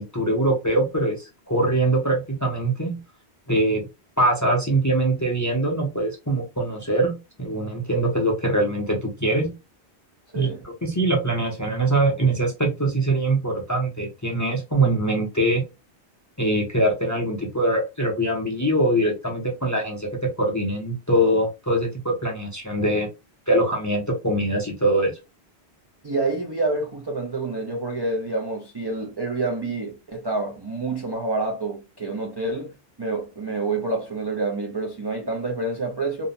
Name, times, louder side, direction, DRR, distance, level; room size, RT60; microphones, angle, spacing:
voice 1, 0.0-3.0 3.5-3.9 4.2-9.5 10.4-15.6 16.4-23.1 23.5-25.2, right 1 dB, 25° left, 0.4 m, -23 dB
voice 2, 26.0-36.3, right 3 dB, 45° right, 0.3 m, -28 dB
2.7 x 2.0 x 2.6 m
omnidirectional pair, 1.1 m